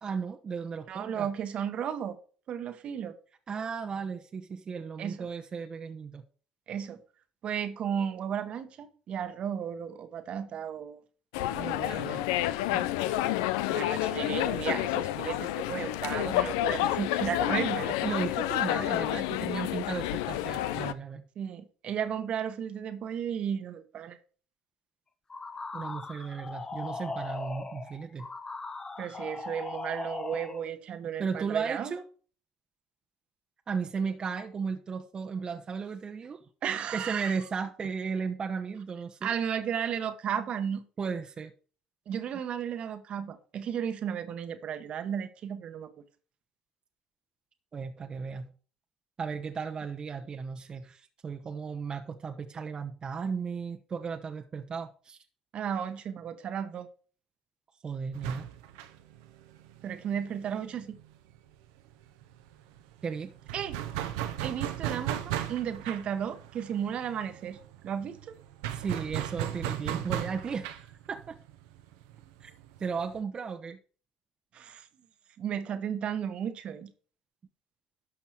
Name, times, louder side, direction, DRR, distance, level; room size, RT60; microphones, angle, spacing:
voice 1, 0.0-1.3 3.5-6.2 11.6-12.2 12.7-12.9 18.0-21.2 25.7-28.3 31.2-32.0 33.7-36.4 36.9-39.3 41.0-41.5 47.7-48.5 49.2-55.2 57.8-58.5 63.0-63.3 68.7-71.4 72.4-72.5 72.8-73.8, right 5 dB, 40° right, 1.0 m, -35 dB
voice 2, 0.9-2.2 2.5-3.2 5.0-5.3 6.7-7.0 7.4-11.0 11.5-12.3 13.7-18.0 21.4-24.2 29.0-31.9 36.6-37.3 39.2-40.8 42.1-46.0 55.5-56.9 59.8-61.0 63.5-63.8 64.2-67.6 67.8-68.3 74.5-74.9 75.4-76.9, right 8 dB, 55° right, 1.2 m, -34 dB
sound 1, 11.3-20.9, left 14 dB, 80° left, 0.5 m, -29 dB
sound 2, 25.3-30.7, left 3 dB, 30° left, 1.2 m, -39 dB
sound 3, 58.1-61.5 61.8-61.9 62.2-73.2, right 12 dB, 80° right, 0.9 m, -37 dB
12.0 x 5.8 x 4.6 m
hypercardioid pair, 65°, 2 cm